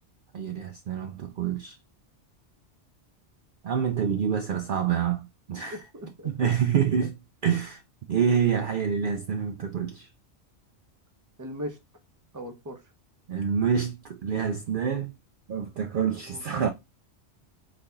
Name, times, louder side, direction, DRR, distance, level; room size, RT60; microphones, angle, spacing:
voice 1, 0.3-1.8 3.6-5.8 6.2-7.1 7.4-7.8 8.1-10.1 13.3-15.1 15.5-16.7, right 7 dB, 60° right, 0.6 m, -27 dB
voice 2, 5.6-6.5 7.0-7.1 11.4-11.8 12.3-12.8 16.2-16.7, equal, 20° right, 0.7 m, -39 dB
4.1 x 3.4 x 3.4 m
omnidirectional pair, 1.2 m